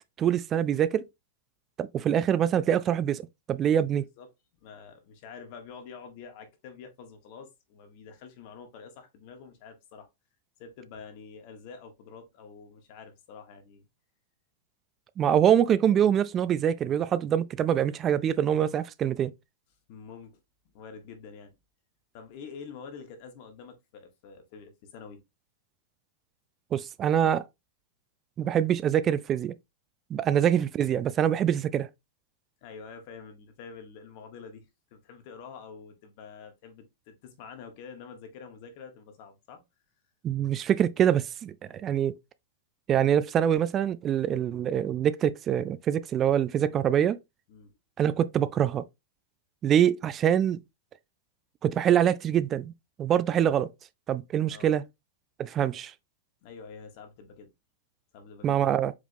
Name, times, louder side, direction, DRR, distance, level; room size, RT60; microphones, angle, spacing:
voice 1, 0.2-1.0 1.8-4.0 15.2-19.3 26.7-27.4 28.4-29.5 30.1-31.9 40.2-41.5 41.8-42.1 42.9-47.2 48.0-48.8 49.6-50.6 51.6-52.7 53.0-53.7 54.1-54.8 55.4-55.9 58.4-58.9, right 9 dB, 25° right, 0.3 m, -24 dB
voice 2, 4.0-4.3 4.6-10.1 10.6-13.8 19.9-20.4 20.7-21.5 22.1-25.2 32.6-39.6 47.5-47.8 54.5-54.7 56.4-57.5 58.1-58.7, left 5 dB, 50° left, 1.3 m, -47 dB
4.8 x 3.6 x 2.7 m
hypercardioid pair, 135°, 0 cm